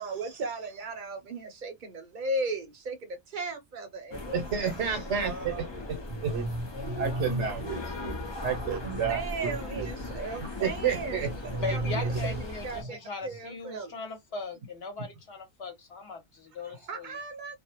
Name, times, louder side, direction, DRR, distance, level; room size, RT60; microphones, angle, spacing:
voice 1, 0.0-5.7 7.2-7.3 8.7-8.8 9.1-11.2 11.7-13.9 16.9-17.6, right 2 dB, 50° right, 0.7 m, -37 dB
sound 1, 4.1-12.8, left 2 dB, 40° left, 0.4 m, -38 dB
voice 2, 4.3-8.1 8.4-9.9 10.4-11.6, right 6 dB, 80° right, 1.0 m, -31 dB
voice 3, 11.6-17.2, left 4 dB, 65° left, 1.1 m, -39 dB
2.4 x 2.0 x 2.8 m
omnidirectional pair, 1.2 m